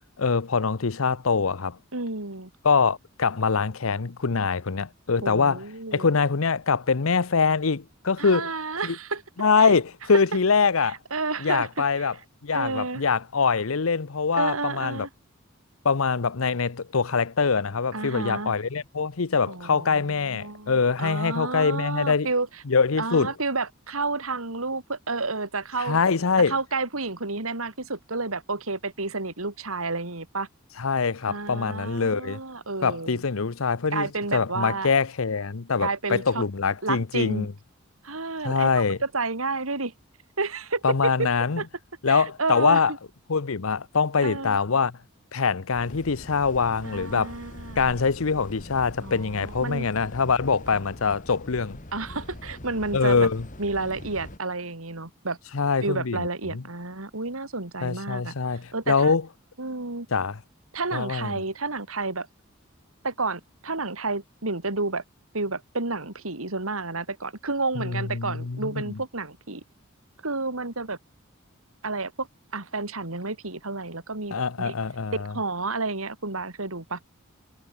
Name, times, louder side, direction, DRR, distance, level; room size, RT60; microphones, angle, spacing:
voice 1, 0.2-1.8 2.6-5.6 5.9-8.5 8.8-9.0 9.4-11.0 11.4-12.1 12.4-15.1 15.8-22.3 22.7-23.3 25.8-26.6 30.8-32.4 32.8-37.5 38.4-39.0 40.8-41.6 42.0-42.9 43.3-45.0 45.3-47.3 47.8-51.8 52.9-53.5 55.5-56.6 57.8-59.3 60.1-60.4 60.9-61.3 67.7-69.0 74.3-75.3, left 5 dB, 80° left, 0.8 m, -24 dB
voice 2, 1.9-2.5 5.2-6.1 8.2-9.2 9.6-9.7 11.1-12.1 12.5-13.0 14.4-15.1 17.9-18.5 19.5-22.5 23.0-26.0 26.5-30.5 31.3-33.2 33.9-34.9 35.8-36.4 36.8-37.5 38.0-39.9 40.4-41.3 41.6-41.7 42.1-42.8 44.2-44.6 46.8-47.9 49.0-49.9 50.7-50.8 51.9-53.3 53.6-55.4 55.8-58.3 58.7-59.1 59.6-60.1 60.7-62.3 63.0-65.0 65.3-69.6 70.2-71.0 71.8-72.3 72.5-74.7 75.3-77.0, right 3 dB, 85° right, 3.4 m, -30 dB
sound 1, 45.7-54.4, left 1 dB, 35° left, 2.2 m, -43 dB
head